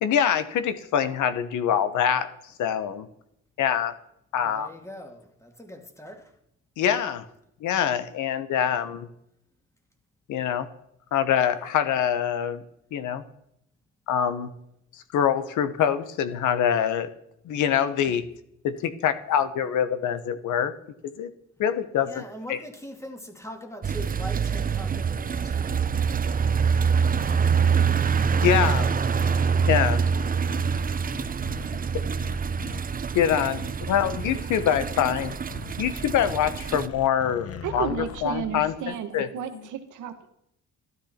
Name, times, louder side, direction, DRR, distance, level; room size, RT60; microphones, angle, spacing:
voice 1, 0.0-2.3 2.6-3.0 3.6-3.9 4.3-4.7 6.8-7.2 7.6-9.1 10.3-10.7 11.1-12.6 12.9-13.2 14.1-14.5 15.1-17.1 17.5-18.2 18.6-20.7 21.2-21.3 21.6-22.2 22.5-22.6 28.4-28.9 29.7-30.0 33.1-35.3 35.8-37.9 38.2-39.3, left 9 dB, 80° left, 1.1 m, -24 dB
voice 2, 4.4-6.3 18.1-18.2 22.0-26.0 31.7-32.0, equal, 10° left, 2.3 m, -42 dB
sound 1, 23.8-36.9, right 6 dB, 30° right, 0.6 m, -25 dB
sound 2, 27.2-29.8 30.1-30.7 31.1-31.7 32.2-32.8 33.5-34.1 35.2-35.7 36.9-38.8, left 8 dB, 50° left, 1.0 m, -41 dB
voice 3, 37.6-40.3, right 8 dB, 80° right, 1.6 m, -33 dB
12.5 x 12.0 x 4.4 m
cardioid pair, 90°, 30 cm